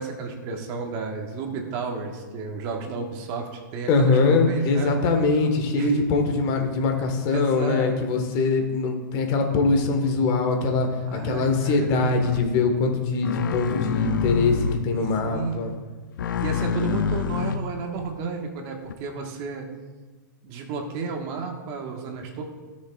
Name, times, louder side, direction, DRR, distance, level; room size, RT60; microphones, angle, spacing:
voice 1, 0.0-4.9 5.8-6.0 7.3-7.9 11.1-11.9 15.2-15.8 16.4-19.7 20.4-22.4, right 4 dB, 40° right, 2 dB, 1.5 m, -32 dB
voice 2, 3.9-15.7, left 3 dB, 40° left, 4 dB, 1.6 m, -22 dB
sound 1, 12.2-12.5 13.2-14.9 15.2-15.5 16.2-18.1 18.9-19.0, left 7 dB, 75° left, 0.6 m, -27 dB
17.5 x 6.5 x 2.5 m, 1.3 s
hypercardioid pair, 130°, 11 cm